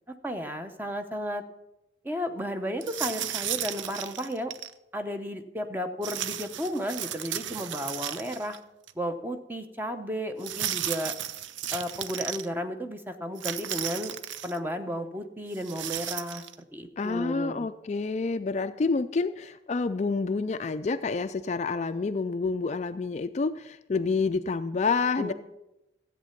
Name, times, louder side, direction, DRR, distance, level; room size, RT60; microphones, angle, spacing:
voice 1, 0.2-1.4 2.0-4.5 4.9-8.6 9.0-11.1 11.7-14.1 14.4-16.4 16.7-17.7 25.2-25.3, equal, 10° right, 7 dB, 0.7 m, -33 dB
sound 1, 2.8-4.7 6.0-8.6 8.9-9.0 10.4-12.5 13.4-14.6 15.5-16.5, right 11 dB, 80° right, 0.5 m, -34 dB
voice 2, 17.0-25.3, left 4 dB, 35° left, 10 dB, 0.3 m, -28 dB
13.5 x 8.4 x 5.8 m, 0.93 s
head